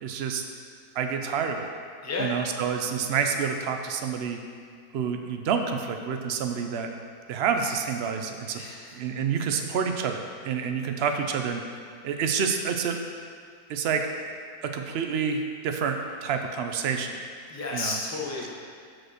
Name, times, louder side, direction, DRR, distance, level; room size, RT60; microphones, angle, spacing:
voice 1, 0.0-0.4 0.9-1.7 2.2-4.4 4.9-6.9 7.3-8.6 8.9-11.6 12.0-13.0 13.7-14.1 14.6-17.1 17.7-18.0, right 6 dB, 75° right, 5 dB, 0.5 m, -28 dB
voice 2, 8.5-8.9 17.5-18.5, left 3 dB, 15° left, -3 dB, 0.7 m, -32 dB
5.8 x 5.2 x 6.3 m, 2.1 s
omnidirectional pair, 1.7 m